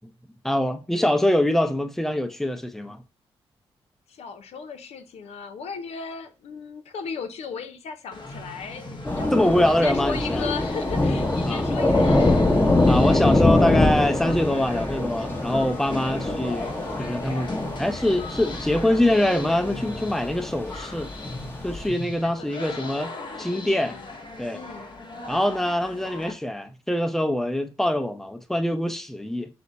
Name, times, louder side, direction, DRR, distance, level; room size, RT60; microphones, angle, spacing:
voice 1, 0.4-3.0 9.3-10.5 11.5-11.6 12.9-21.1 21.6-23.1 23.4-24.0 24.4-24.6 25.3-29.5, left 1 dB, 5° left, 0.6 m, -24 dB
voice 2, 4.1-12.3 22.2-22.9 23.4-24.1 24.5-24.9, left 5 dB, 80° left, 0.6 m, -37 dB
sound 1, 8.1-26.3, left 2 dB, 45° left, 1.0 m, -38 dB
Thunder / Rain, 9.0-21.9, left 2 dB, 20° left, 1.0 m, -24 dB
5.8 x 2.1 x 4.0 m
cardioid pair, 55°, 11 cm